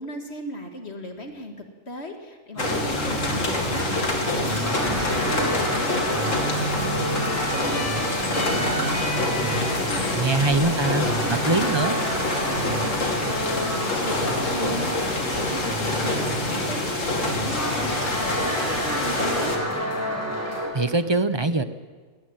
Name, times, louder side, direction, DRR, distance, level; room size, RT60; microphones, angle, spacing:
voice 1, 0.0-3.9 4.2-9.0 9.9-10.2 10.4-11.9 12.3-19.7, equal, 50° left, 4 dB, 2.4 m, -37 dB
sound 1, 2.5-20.7, right 1 dB, 10° left, 6.4 m, -29 dB
sound 2, 2.6-19.6, left 2 dB, 70° left, 2.9 m, -27 dB
voice 2, 10.1-11.1 11.5-12.0 20.7-21.6, right 3 dB, 25° right, 12 dB, 0.7 m, -22 dB
20.5 x 14.5 x 9.1 m, 1.5 s
omnidirectional pair, 1.4 m